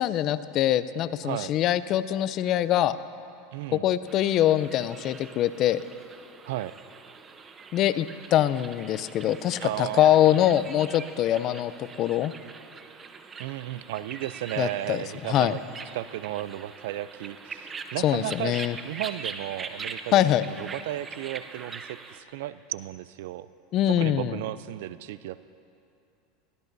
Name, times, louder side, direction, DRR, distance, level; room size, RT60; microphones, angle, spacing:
voice 1, 0.0-3.0 3.7-5.8 7.7-11.7 12.0-12.3 14.6-15.6 18.0-18.8 20.1-20.4 23.7-24.4, left 12 dB, 45° left, 15 dB, 0.5 m, -23 dB
voice 2, 3.5-3.9 6.5-6.7 9.6-10.5 13.4-15.6 15.9-18.6 18.8-23.5 23.9-25.4, right 14 dB, 75° right, 16 dB, 0.4 m, -34 dB
sound 1, 4.1-22.2, right 5 dB, 25° right, 0.7 m, -43 dB
22.0 x 16.0 x 2.7 m, 2.7 s
supercardioid pair, 110°, 0 cm